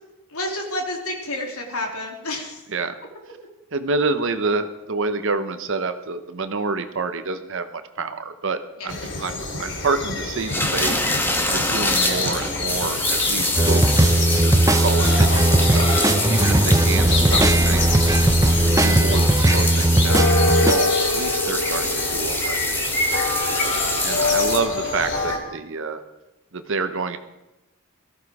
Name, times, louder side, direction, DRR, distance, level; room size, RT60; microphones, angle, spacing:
voice 1, 0.3-2.6 8.8-8.9 23.3-23.7, left 1 dB, 90° left, 2 dB, 2.7 m, -30 dB
voice 2, 3.7-11.0 11.4-15.9 16.2-18.1 18.6-22.7 23.7-26.0 26.5-27.2, right 4 dB, 60° right, 9 dB, 0.9 m, -28 dB
sound 1, 8.9-25.4, left 2 dB, 55° left, 2.7 m, -26 dB
sound 2, 10.5-24.6, left 1 dB, 10° left, 1.4 m, -26 dB
sound 3, 13.6-20.7, right 1 dB, 15° right, 0.6 m, -18 dB
18.0 x 14.0 x 4.8 m, 1.0 s
head